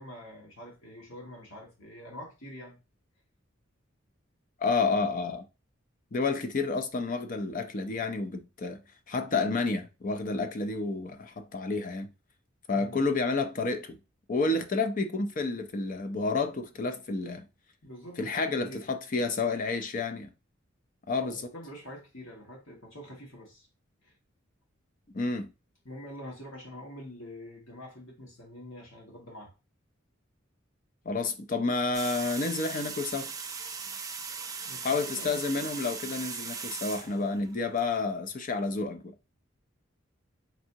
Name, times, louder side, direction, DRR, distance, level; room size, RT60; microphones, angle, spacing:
voice 1, 0.0-2.8 12.7-13.0 17.8-18.9 21.2-23.7 24.0-24.1 25.9-29.5 34.7-35.5, equal, 90° left, 1.8 m, -45 dB
voice 2, 4.6-5.4 6.1-8.8 9.1-12.1 12.7-14.0 14.3-17.4 18.2-20.3 21.1-21.5 25.1-25.5 31.1-33.3 34.8-39.1, left 3 dB, 40° left, 0.5 m, -30 dB
sound 1, 31.9-37.8, right 5 dB, 15° right, 0.4 m, -39 dB
4.0 x 3.6 x 2.8 m
head